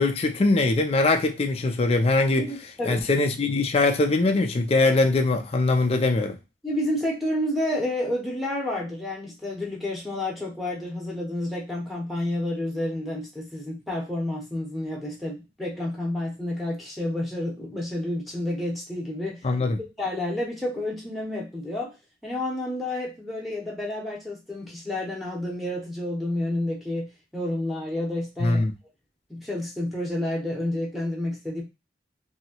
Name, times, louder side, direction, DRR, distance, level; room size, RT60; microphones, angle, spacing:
voice 1, 0.0-2.5 2.9-6.4 19.4-19.8 28.4-28.7, left 2 dB, 35° left, 0.4 m, -22 dB
voice 2, 2.4-3.1 6.6-19.4 19.8-21.9 22.2-28.7 29.3-31.6, left 1 dB, ahead, 0.9 m, -30 dB
2.9 x 2.7 x 2.8 m
head